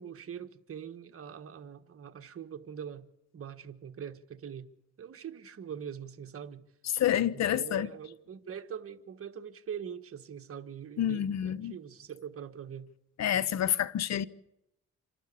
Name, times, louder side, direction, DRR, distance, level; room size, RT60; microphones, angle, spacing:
voice 1, 0.0-3.1 3.3-4.7 5.0-6.7 7.3-12.9, right 8 dB, 50° right, 1.5 m, -43 dB
voice 2, 6.9-7.9 11.0-11.7 13.2-14.3, left 10 dB, 60° left, 0.9 m, -28 dB
26.5 x 12.0 x 8.6 m
cardioid pair, 90°, 30 cm